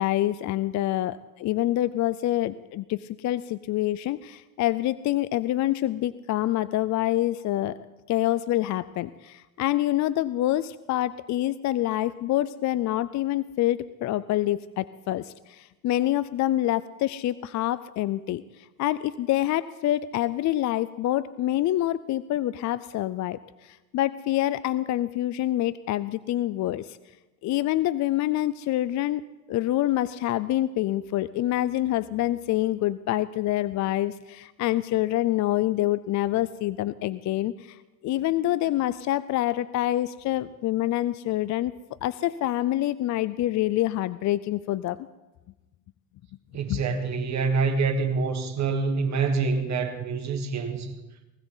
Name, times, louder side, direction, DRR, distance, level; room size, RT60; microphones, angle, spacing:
voice 1, 0.0-7.8 8.1-18.4 18.8-27.0 27.4-29.2 29.5-37.8 38.0-41.7 42.0-45.0 46.7-46.8, left 14 dB, 50° left, 0.5 m, -26 dB
voice 2, 46.5-50.9, right 4 dB, 45° right, 1.7 m, -26 dB
19.5 x 15.5 x 4.0 m
cardioid pair, 120°, 37 cm